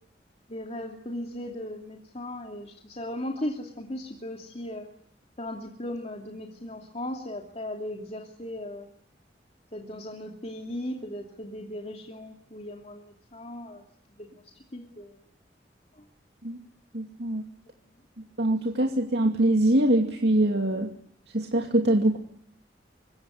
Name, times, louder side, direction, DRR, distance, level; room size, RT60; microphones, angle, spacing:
voice 1, 0.5-4.9 5.4-8.9 9.7-13.8 14.2-15.2 15.9-16.0 17.7-17.8, left 1 dB, 35° left, 2 dB, 2.9 m, -37 dB
voice 2, 16.9-17.4 18.4-20.9 21.3-22.2, right 1 dB, 65° right, 2 dB, 2.5 m, -23 dB
25.5 x 23.0 x 9.8 m, 0.65 s
head